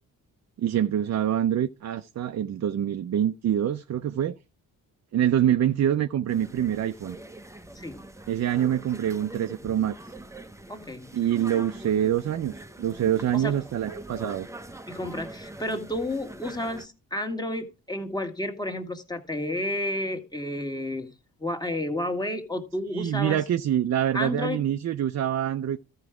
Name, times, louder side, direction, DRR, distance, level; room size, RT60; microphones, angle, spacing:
voice 1, 0.6-4.4 5.1-7.2 8.3-10.1 11.1-14.5 22.9-25.8, right 10 dB, 45° right, 0.5 m, -25 dB
sound 1, 6.3-16.9, right 1 dB, 5° right, 0.7 m, -43 dB
voice 2, 10.7-11.1 13.3-13.6 14.9-21.1 21.4-23.4 24.1-24.6, left 1 dB, 10° left, 1.7 m, -31 dB
13.5 x 4.8 x 4.8 m
supercardioid pair, 50°, 39 cm